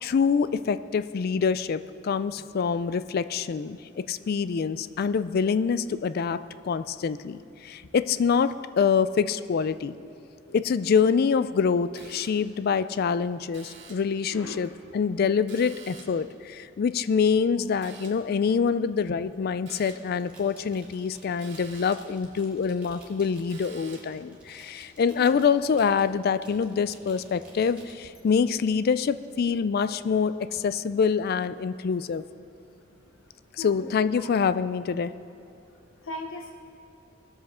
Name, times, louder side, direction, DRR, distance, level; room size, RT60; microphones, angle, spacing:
voice 1, 0.0-9.9 10.5-32.2 33.6-35.1, left 6 dB, 50° left, 14 dB, 0.3 m, -25 dB
sound 1, 12.0-12.6 13.5-14.2 15.5-16.3 17.8-18.4 19.7-20.2 21.4-22.2 23.5-24.2, right 5 dB, 65° right, 1.7 m, -49 dB
voice 2, 14.3-14.6 25.1-25.4 33.6-33.9 34.2-34.3 36.0-36.5, left 1 dB, 90° left, 2 dB, 0.8 m, -39 dB
sound 2, 20.2-27.9, right 1 dB, 5° right, 2.4 m, -53 dB
20.0 x 7.3 x 4.3 m, 2.6 s
head